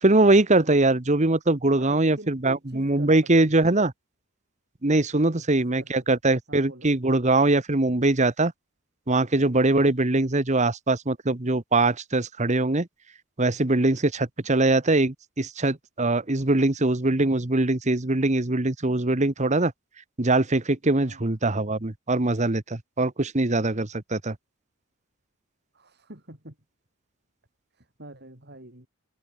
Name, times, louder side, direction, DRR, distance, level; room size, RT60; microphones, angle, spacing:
voice 1, 0.0-3.9 4.8-8.5 9.1-12.9 13.4-19.7 20.2-24.3, right 2 dB, 30° right, 1.2 m, -22 dB
voice 2, 1.8-3.8 5.3-5.9 6.5-6.9 10.1-10.3 21.0-21.3 25.7-26.6 27.7-28.9, right 1 dB, 45° right, 5.3 m, -45 dB
head